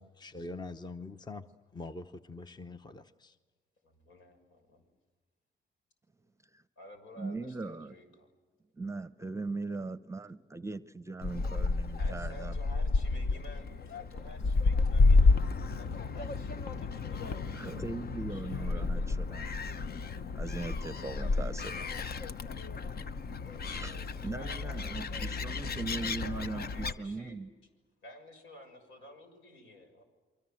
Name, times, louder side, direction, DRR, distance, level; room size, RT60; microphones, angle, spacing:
voice 1, 0.0-1.5 1.7-3.4, left 3 dB, 20° left, 10 dB, 0.9 m, -44 dB
voice 2, 3.8-4.8 6.8-8.3 12.0-17.7 18.3-19.1 21.0-22.0 23.3-27.4 28.0-30.0, left 1 dB, 80° left, 5 dB, 6.6 m, -52 dB
voice 3, 7.2-7.9 8.8-12.6 14.4-14.5 15.4-15.6 15.9-16.1 16.7-16.8 17.2-19.5 20.3-21.8 23.0-23.1 23.6-27.5, right 3 dB, 15° right, 14 dB, 0.8 m, -40 dB
Gull seagull, 11.2-26.9, left 3 dB, 50° left, 1.0 m, -30 dB
29.5 x 24.0 x 7.8 m, 1.3 s
cardioid pair, 90°, 20 cm